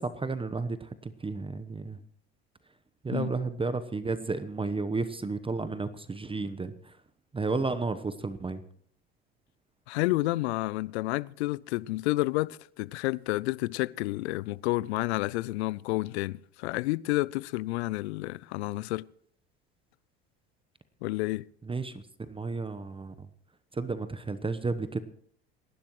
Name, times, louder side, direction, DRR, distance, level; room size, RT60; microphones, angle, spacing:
voice 1, 0.0-2.0 3.0-6.9 7.3-8.6 21.6-21.9 22.3-23.1 23.7-25.0, right 3 dB, 15° right, 1.0 m, -32 dB
voice 2, 9.9-19.1 21.0-21.4, left 20 dB, 75° left, 0.5 m, -30 dB
28.5 x 11.5 x 3.1 m
hypercardioid pair, 75°, 33 cm